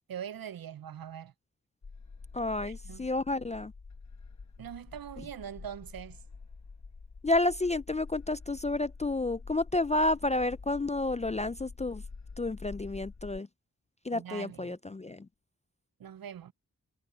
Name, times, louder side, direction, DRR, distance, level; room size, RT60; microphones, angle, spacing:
voice 1, 0.1-1.3 2.6-3.1 4.6-6.2 14.1-14.8 16.0-16.5, right 9 dB, 80° right, 0.5 m, -42 dB
sound 1, 1.8-13.4, left 4 dB, 50° left, 1.2 m, -47 dB
voice 2, 2.3-3.7 7.2-12.0 12.4-13.5 14.0-15.3, left 2 dB, 20° left, 0.3 m, -30 dB
wide cardioid pair, 55°, 35 cm